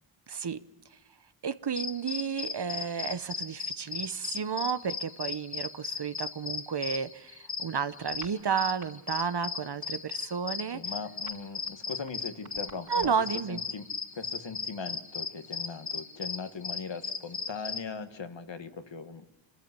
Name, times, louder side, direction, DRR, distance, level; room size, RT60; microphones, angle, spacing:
voice 1, 0.3-0.6 1.4-10.8 12.9-13.6, right 6 dB, 55° right, 13 dB, 0.9 m, -32 dB
sound 1, 1.8-17.8, left 5 dB, 35° left, 1.0 m, -37 dB
sound 2, 8.1-8.9 9.2-9.5 9.8-13.3, right 3 dB, 40° right, 5.0 m, -51 dB
voice 2, 10.7-13.1 13.5-13.9 14.1-19.2, left 5 dB, 60° left, 9 dB, 1.6 m, -40 dB
27.0 x 13.5 x 9.6 m, 1.1 s
wide cardioid pair, 85°, 50 cm